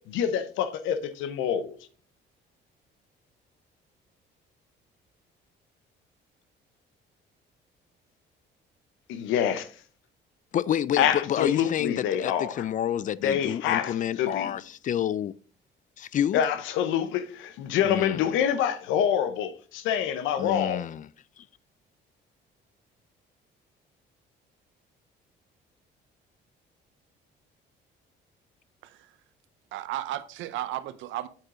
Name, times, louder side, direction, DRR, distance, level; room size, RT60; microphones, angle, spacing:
voice 1, 0.1-1.8 9.1-9.7 11.0-12.6 13.2-14.5 16.3-20.8, left 9 dB, 85° left, 0.8 m, -26 dB
voice 2, 10.5-15.3 16.0-16.4 17.8-18.3 20.4-21.1, left 10 dB, 40° left, 0.4 m, -29 dB
voice 3, 28.8-29.2 29.7-31.3, right 14 dB, 80° right, 0.6 m, -34 dB
8.5 x 4.9 x 3.7 m
cardioid pair, 90°, 20 cm